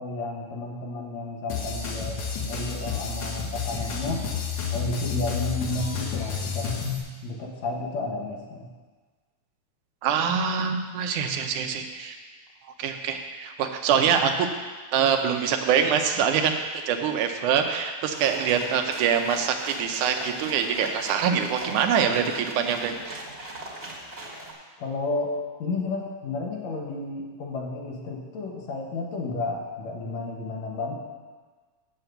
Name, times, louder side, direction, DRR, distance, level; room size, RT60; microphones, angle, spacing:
voice 1, 0.0-4.3 4.7-6.7 7.2-8.7 24.8-30.9, left 2 dB, 65° left, -1 dB, 2.5 m, -32 dB
sound 1, 1.5-7.0, left 6 dB, 85° left, 2.8 m, -30 dB
voice 2, 10.0-12.2 12.8-14.5 14.9-16.6 16.9-23.2, right 7 dB, 90° right, 5 dB, 2.3 m, -24 dB
sound 2, 18.1-24.5, right 1 dB, 25° right, 1.3 m, -40 dB
7.3 x 7.2 x 7.9 m, 1.4 s
omnidirectional pair, 3.4 m